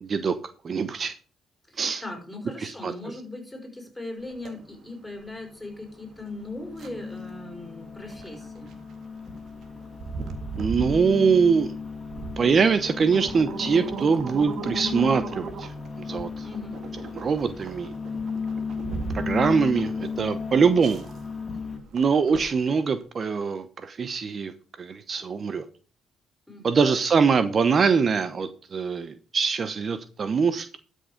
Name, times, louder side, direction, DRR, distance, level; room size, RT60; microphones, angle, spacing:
voice 1, 0.0-0.4 0.6-1.1 1.8-2.0 2.6-2.9 10.6-11.7 12.4-15.7 16.0-16.5 17.1-17.9 19.1-21.0 21.9-24.5 24.8-25.6 26.6-30.8, right 5 dB, 45° right, 11 dB, 0.8 m, -23 dB
voice 2, 1.7-8.8 16.4-16.8 22.1-22.4 26.5-26.8, left 2 dB, 10° left, 2 dB, 5.2 m, -39 dB
sound 1, 4.2-23.0, right 4 dB, 70° right, 1.9 m, -39 dB
sound 2, 5.3-21.8, left 5 dB, 25° left, 2.5 m, -35 dB
12.5 x 6.5 x 5.1 m, 0.39 s
cardioid pair, 90°, 0 cm